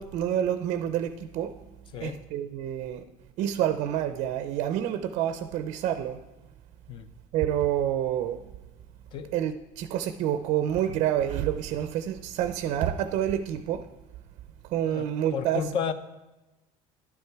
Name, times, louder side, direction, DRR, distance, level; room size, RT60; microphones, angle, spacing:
voice 1, 0.0-1.6 2.0-3.0 3.4-6.2 7.3-8.4 9.3-13.9 14.7-15.7, right 10 dB, 50° right, 0.5 m, -28 dB
voice 2, 1.9-2.2 6.9-7.1 9.1-9.3 14.9-15.9, left 7 dB, 35° left, 0.6 m, -32 dB
11.5 x 9.7 x 4.6 m
cardioid pair, 170°, 14 cm